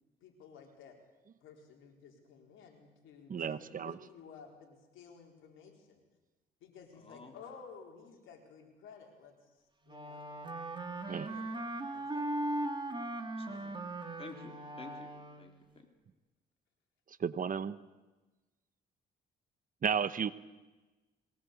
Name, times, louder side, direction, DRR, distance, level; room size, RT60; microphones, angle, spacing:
voice 1, 0.2-1.0 1.4-6.0 6.6-9.3 9.9-10.2 10.9-11.6 11.9-12.3 13.5-13.8, left 6 dB, 85° left, 2 dB, 4.3 m, -54 dB
voice 2, 3.3-4.0 11.1-11.3 17.2-17.8 19.8-20.3, right 7 dB, 45° right, 15 dB, 0.9 m, -33 dB
voice 3, 7.0-7.4 13.4-13.9 14.2-15.1 15.4-15.9, left 4 dB, 30° left, 4 dB, 3.8 m, -51 dB
Wind instrument woodwind instrument, 9.9-15.6, right 1 dB, 25° right, 2.5 m, -39 dB
22.0 x 18.5 x 8.3 m, 1.2 s
cardioid pair, 90°, 20 cm